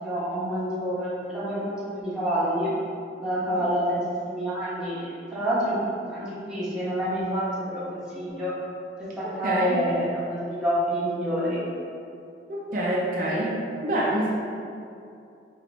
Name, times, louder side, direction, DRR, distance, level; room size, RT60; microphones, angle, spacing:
voice 1, 0.0-2.7 3.2-5.8 6.0-8.5 9.2-11.6, equal, 5° right, -11 dB, 1.0 m, -28 dB
voice 2, 9.2-9.8 12.5-14.3, right 1 dB, 50° right, -5 dB, 0.5 m, -27 dB
3.1 x 2.9 x 4.0 m, 2.5 s
head